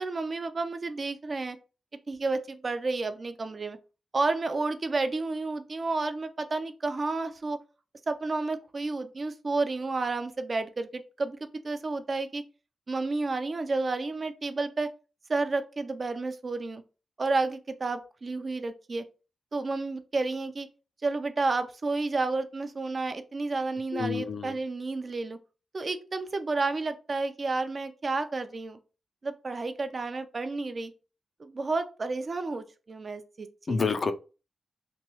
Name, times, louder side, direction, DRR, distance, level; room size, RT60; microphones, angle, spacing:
voice 1, 0.0-1.6 2.1-3.8 4.1-7.6 8.1-12.4 12.9-14.9 15.3-16.8 17.2-19.1 19.5-20.7 21.0-25.4 25.7-28.8 29.2-30.9 31.4-33.8, right 3 dB, 45° right, 0.4 m, -31 dB
voice 2, 23.9-24.5 33.7-34.1, left 4 dB, 50° left, 0.3 m, -28 dB
2.9 x 2.2 x 3.0 m
cardioid pair, 80°, 0 cm